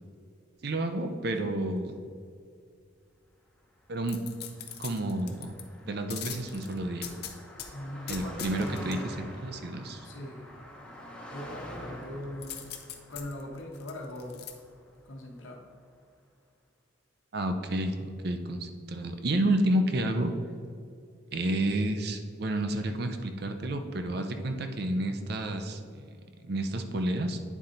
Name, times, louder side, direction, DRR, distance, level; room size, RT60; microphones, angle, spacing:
voice 1, 0.6-2.0 3.9-4.2 4.8-5.5 5.9-7.0 8.1-10.0 17.3-18.0 18.2-20.3 21.3-26.1 26.4-27.4, right 1 dB, 55° right, 6 dB, 0.6 m, -30 dB
Car passing by, 3.9-15.4, equal, 5° left, 0.8 m, -47 dB
sound 1, 4.1-5.6 6.1-7.7 8.1-9.0 12.4-14.5 15.0-15.1, left 9 dB, 55° left, 0.7 m, -41 dB
voice 2, 7.7-9.2 10.0-10.5 11.3-12.7 13.1-14.4 15.0-15.6, left 1 dB, 90° left, 1 dB, 1.1 m, -41 dB
9.2 x 4.3 x 3.8 m, 2.3 s
head